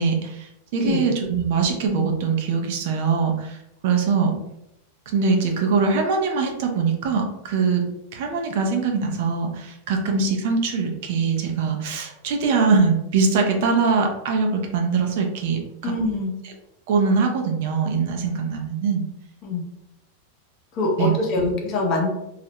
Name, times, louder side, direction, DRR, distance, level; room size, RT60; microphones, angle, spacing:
voice 1, 0.0-3.6 3.8-4.4 5.1-7.9 8.1-15.9 16.4-16.5 16.9-19.0 21.0-21.1 21.4-21.6, right 5 dB, 60° right, 2 dB, 0.5 m, -22 dB
voice 2, 15.8-16.4 19.4-19.7 20.7-22.1, left 2 dB, 40° left, 0 dB, 0.7 m, -24 dB
2.4 x 2.0 x 2.8 m, 0.85 s
supercardioid pair, 140°, 0 cm